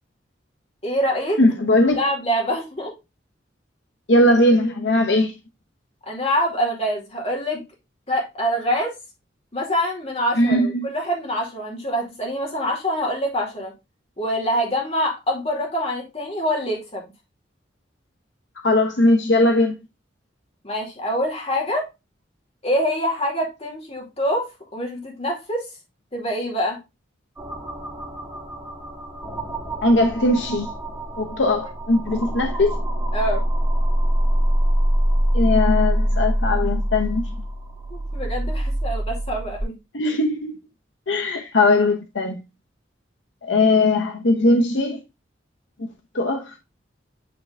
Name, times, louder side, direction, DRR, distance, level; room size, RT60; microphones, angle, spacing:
voice 1, 0.8-1.4 2.0-2.9 6.1-7.6 8.1-9.0 9.5-13.7 14.2-17.1 20.6-21.9 22.6-25.7 26.1-26.8 33.1-33.4 37.9-39.7, equal, 35° left, 2.3 m, -25 dB
voice 2, 1.4-2.0 4.1-5.3 10.4-10.9 18.6-19.8 29.8-30.7 31.2-32.8 35.3-37.2 39.9-40.5 41.1-42.4 43.5-45.0 45.8-45.9 46.1-46.4, left 2 dB, 75° left, 0.9 m, -19 dB
sound 1, 27.4-39.6, equal, 15° right, 1.7 m, -24 dB
8.7 x 3.3 x 3.6 m
head